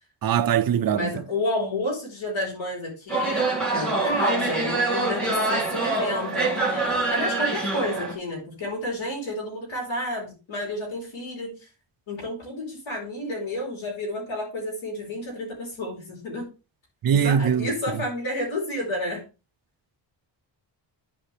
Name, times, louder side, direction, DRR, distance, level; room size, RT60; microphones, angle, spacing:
voice 1, 0.2-1.1 17.0-17.7, right 8 dB, 50° right, 0.6 m, -21 dB
voice 2, 0.9-11.6 12.1-16.5 17.1-19.2, left 1 dB, 70° left, 4.4 m, -30 dB
sound 1, 3.1-8.1, right 3 dB, ahead, 2.3 m, -25 dB
10.5 x 5.1 x 3.4 m
wide cardioid pair, 135°, 48 cm